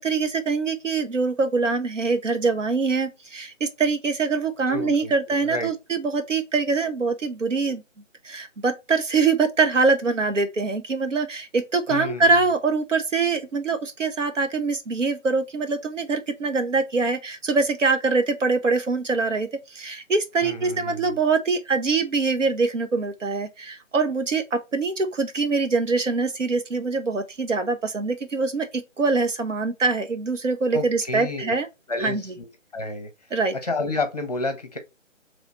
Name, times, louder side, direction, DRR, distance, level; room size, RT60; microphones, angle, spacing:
voice 1, 0.0-7.8 8.2-31.7 32.0-32.2 33.3-33.5, right 4 dB, 70° right, 1.0 m, -24 dB
voice 2, 4.7-5.7 11.9-12.4 20.4-21.2 30.7-31.5 31.9-33.1 33.6-34.8, left 2 dB, 30° left, 0.8 m, -30 dB
3.2 x 3.0 x 4.1 m
figure-of-eight pair, 155°, 39 cm